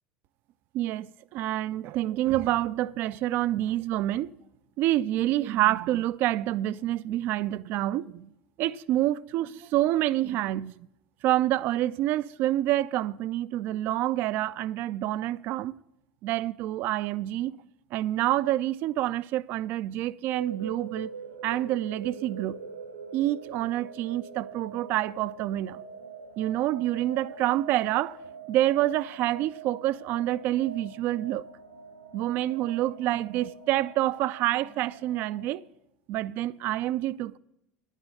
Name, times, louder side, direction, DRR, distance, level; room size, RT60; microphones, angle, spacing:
voice 1, 0.7-4.3 4.8-8.3 8.6-10.9 11.2-15.7 16.2-17.5 17.9-21.1 21.4-22.6 23.1-25.8 26.4-28.2 28.5-31.4 32.1-35.6 36.1-37.4, right 14 dB, 45° right, 0.3 m, -27 dB
sound 1, 20.3-35.6, right 5 dB, 80° right, 1.2 m, -44 dB
11.0 x 9.0 x 6.6 m
figure-of-eight pair, 70°, 5 cm